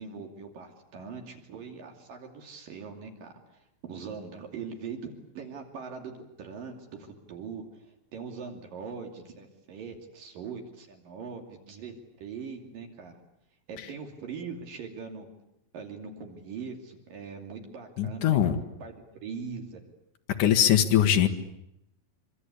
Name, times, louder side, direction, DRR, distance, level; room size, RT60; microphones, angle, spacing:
voice 1, 0.0-3.3 3.8-11.9 12.2-13.2 13.7-15.3 15.7-18.5 18.8-19.8, right 5 dB, 70° right, 3 dB, 4.4 m, -41 dB
voice 2, 18.0-18.6 20.4-21.3, left 10 dB, 65° left, 6 dB, 2.9 m, -21 dB
25.0 x 25.0 x 8.4 m, 0.83 s
omnidirectional pair, 4.1 m